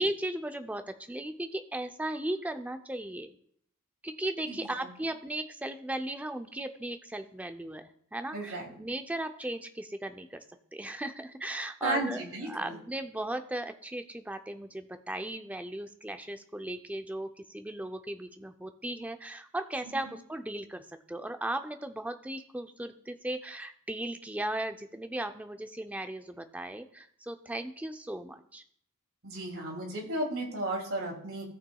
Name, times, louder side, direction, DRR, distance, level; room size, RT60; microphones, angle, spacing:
voice 1, 0.0-3.3 4.0-7.8 8.1-10.4 10.7-28.6, right 1 dB, 5° right, 7 dB, 0.4 m, -36 dB
voice 2, 4.4-4.9 8.3-8.7 11.8-12.8 20.1-20.2 29.2-31.4, right 2 dB, 65° right, 0 dB, 2.6 m, -34 dB
17.0 x 6.0 x 2.3 m, 0.63 s
head